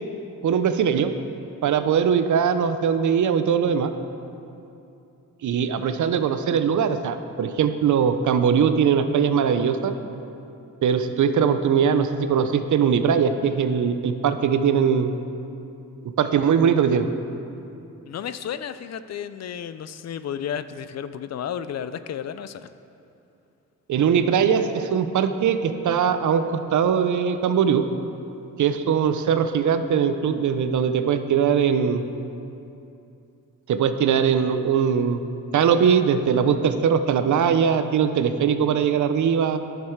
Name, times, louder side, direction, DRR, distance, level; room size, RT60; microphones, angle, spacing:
voice 1, 0.4-1.1 1.6-3.9 5.4-9.9 10.8-15.1 16.2-17.1 23.9-27.8 28.6-32.0 33.7-35.2 35.5-39.6, right 7 dB, 65° right, 10 dB, 0.6 m, -21 dB
voice 2, 18.1-22.7, left 8 dB, 55° left, 12 dB, 0.4 m, -32 dB
10.5 x 6.7 x 4.6 m, 2.7 s
cardioid pair, 85°, 32 cm